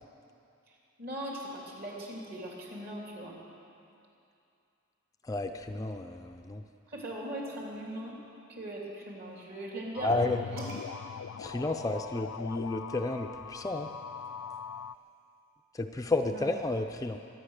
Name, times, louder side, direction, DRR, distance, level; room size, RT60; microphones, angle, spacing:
voice 1, 0.7-3.4 6.9-8.1 8.5-10.7 16.3-16.5, right 1 dB, 50° right, -3 dB, 3.3 m, -40 dB
voice 2, 5.3-6.6 10.0-10.4 11.4-13.9 15.8-17.2, left 2 dB, 15° left, 5 dB, 0.4 m, -31 dB
sound 1, 9.9-14.9, left 7 dB, 90° left, 0.4 m, -41 dB
sound 2, 10.6-12.4 13.5-15.1, equal, 90° right, 3.4 m, -52 dB
23.5 x 9.3 x 6.6 m, 2.6 s
head